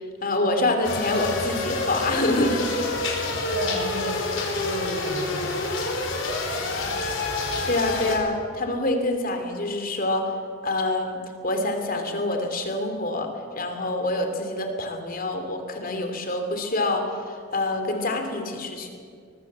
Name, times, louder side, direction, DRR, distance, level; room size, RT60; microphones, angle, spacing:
voice 1, 0.2-2.7 7.6-10.2 10.6-13.3 13.5-18.9, left 2 dB, 45° left, 5 dB, 3.1 m, -26 dB
sound 1, 0.8-8.2, left 3 dB, 65° left, 4.7 m, -28 dB
voice 2, 3.4-4.3 4.7-5.6 6.5-6.9, right 1 dB, 55° right, 3 dB, 4.6 m, -33 dB
23.5 x 20.0 x 7.6 m, 2.2 s
head